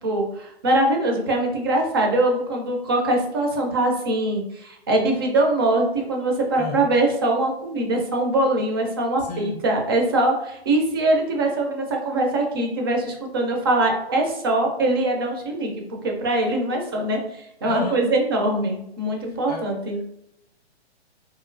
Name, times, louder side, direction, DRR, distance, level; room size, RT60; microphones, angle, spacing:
voice 1, 0.0-15.7 16.0-20.0, right 2 dB, 25° right, 0.4 m, -22 dB
voice 2, 6.6-7.0 9.2-9.7 17.7-18.1 19.2-20.0, left 4 dB, 40° left, 0.6 m, -34 dB
3.0 x 2.6 x 2.5 m
hypercardioid pair, 145°, 33 cm